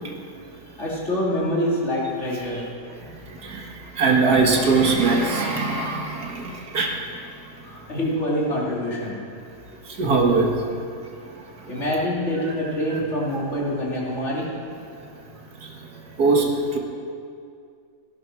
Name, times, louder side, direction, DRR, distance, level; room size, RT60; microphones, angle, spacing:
voice 1, 0.8-2.7 7.6-9.2 11.7-14.5, equal, 45° left, -6 dB, 3.5 m, -25 dB
voice 2, 4.0-6.9 10.0-10.5 12.9-13.0 16.2-16.5, right 4 dB, 70° right, 1 dB, 2.2 m, -20 dB
16.5 x 11.0 x 6.2 m, 2.3 s
omnidirectional pair, 1.7 m